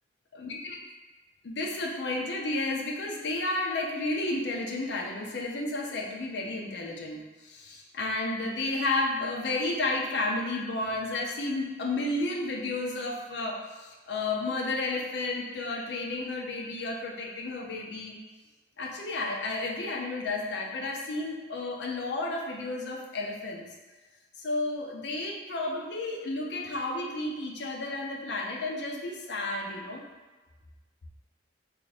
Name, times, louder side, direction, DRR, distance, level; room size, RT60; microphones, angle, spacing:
voice 1, 0.4-0.8 1.4-18.1 18.8-23.7 24.4-30.0, left 2 dB, 70° left, 0 dB, 0.5 m, -32 dB
3.1 x 2.5 x 3.9 m, 1.3 s
head